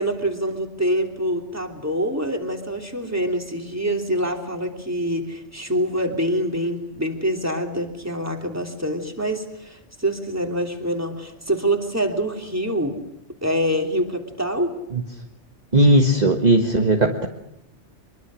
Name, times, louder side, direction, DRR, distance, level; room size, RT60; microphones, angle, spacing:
voice 1, 0.0-13.0 13.4-14.7, equal, 15° right, 3 dB, 3.1 m, -25 dB
voice 2, 15.7-17.3, right 1 dB, 35° right, 3 dB, 1.7 m, -17 dB
24.5 x 23.0 x 6.4 m, 0.87 s
omnidirectional pair, 1.2 m